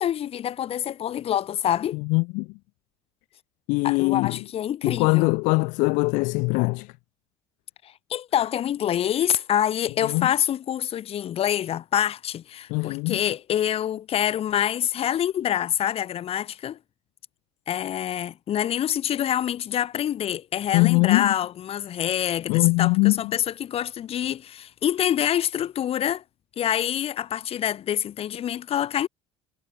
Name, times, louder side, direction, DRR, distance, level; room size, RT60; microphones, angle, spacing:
voice 1, 0.0-2.0 3.8-5.3 7.8-16.8 17.7-26.2 26.6-29.1, left 10 dB, 50° left, 1.7 m, -26 dB
voice 2, 2.1-2.5 3.7-4.4 4.8-6.9 10.0-10.3 12.7-13.2 20.7-21.3 22.5-23.2, left 28 dB, 70° left, 0.7 m, -21 dB
hypercardioid pair, 75°, 13 cm